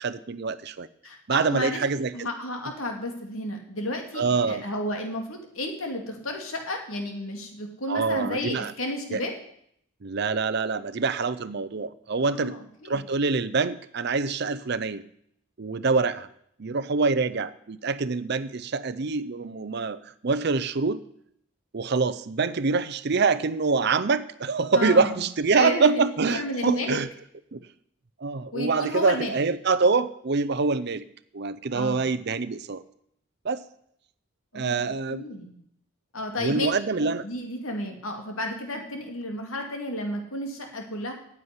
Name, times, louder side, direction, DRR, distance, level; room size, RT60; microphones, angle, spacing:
voice 1, 0.0-0.9 1.3-2.3 4.2-4.6 7.9-8.7 9.1-9.2 10.0-12.5 12.8-15.0 15.6-16.3 16.6-21.0 21.7-27.1 27.5-27.7 28.2-31.1 31.3-32.8 33.4-33.6 34.5-35.2 36.4-37.2, right 4 dB, 50° right, 13 dB, 0.6 m, -25 dB
voice 2, 1.0-1.8 2.1-9.3 12.2-13.1 24.7-25.2 25.5-27.0 28.5-29.4 31.7-32.1 34.5-34.8 35.1-35.6 36.1-36.7 37.0-41.1, left 1 dB, 80° left, 3 dB, 2.5 m, -32 dB
9.8 x 8.2 x 9.7 m, 0.70 s
head